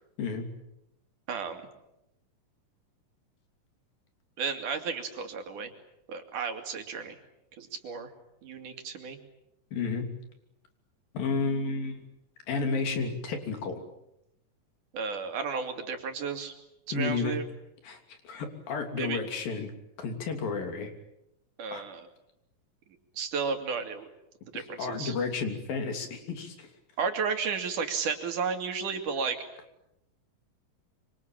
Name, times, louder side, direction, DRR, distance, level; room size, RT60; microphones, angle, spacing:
voice 1, 1.3-1.6 4.4-5.7 6.1-7.2 7.6-8.1 8.4-9.2 14.9-16.5 16.9-17.4 19.0-19.2 21.6-22.0 23.2-24.1 24.5-25.1 27.0-29.4, right 5 dB, 65° right, 6 dB, 3.9 m, -33 dB
voice 2, 9.7-10.1 11.1-12.0 12.5-13.8 16.9-17.4 17.8-18.0 18.2-19.7 20.0-20.9 21.7-21.8 24.5-26.7, left 4 dB, 85° left, 6 dB, 4.8 m, -31 dB
25.5 x 25.5 x 8.8 m, 0.85 s
omnidirectional pair, 4.0 m